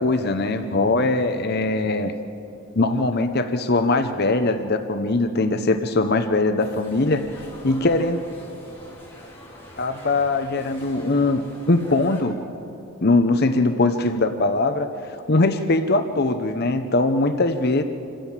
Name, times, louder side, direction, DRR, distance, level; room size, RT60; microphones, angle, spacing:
voice 1, 0.0-2.1 2.8-7.2 7.6-8.2 9.8-11.4 11.7-12.4 13.0-14.9 15.3-17.8, left 2 dB, 45° left, 8 dB, 0.8 m, -21 dB
sound 1, 6.6-12.2, left 1 dB, 10° left, 4.2 m, -44 dB
26.5 x 15.5 x 7.3 m, 2.8 s
head